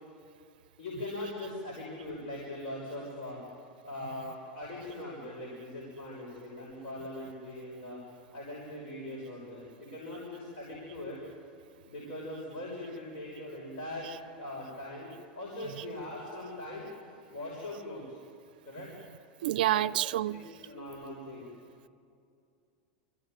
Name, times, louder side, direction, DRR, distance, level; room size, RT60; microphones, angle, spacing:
voice 1, 0.8-3.4 3.8-8.0 8.3-11.2 11.9-14.1 14.4-16.8 17.3-18.2 18.6-18.9 19.7-19.8 20.3-21.5, left 1 dB, 55° left, 6.3 m, -41 dB
voice 2, 18.8-20.5, right 14 dB, 80° right, 0.4 m, -32 dB
23.5 x 16.5 x 9.0 m
supercardioid pair, 120°, 5 cm